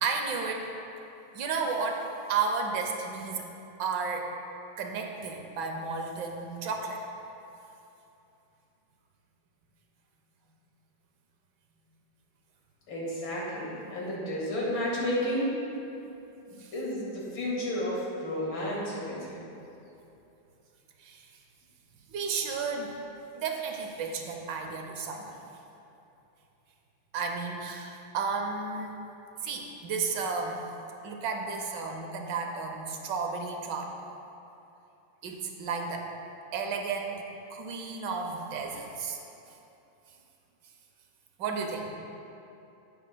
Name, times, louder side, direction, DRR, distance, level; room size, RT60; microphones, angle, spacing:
voice 1, 0.0-0.7 1.3-3.4 3.8-4.3 4.8-7.0 16.6-16.7 21.0-21.3 22.1-23.0 23.3-25.4 27.1-29.0 29.4-30.6 31.0-33.9 35.2-36.1 36.5-39.2 41.4-41.9, right 5 dB, 70° right, 3 dB, 1.4 m, -33 dB
voice 2, 12.9-15.5 16.4-19.4, equal, 80° left, -5 dB, 2.6 m, -32 dB
11.0 x 8.6 x 2.2 m, 2.8 s
omnidirectional pair, 2.1 m